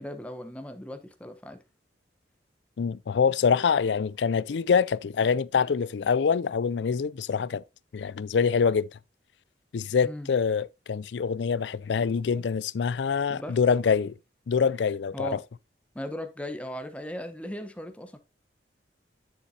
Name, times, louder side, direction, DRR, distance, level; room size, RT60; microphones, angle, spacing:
voice 1, 0.0-1.6 10.0-10.3 13.3-13.6 15.1-15.4 15.9-18.2, equal, 5° left, 1.0 m, -37 dB
voice 2, 2.8-7.6 7.9-8.9 9.7-14.1 14.5-15.4, left 6 dB, 85° left, 0.4 m, -25 dB
10.0 x 6.7 x 2.8 m
head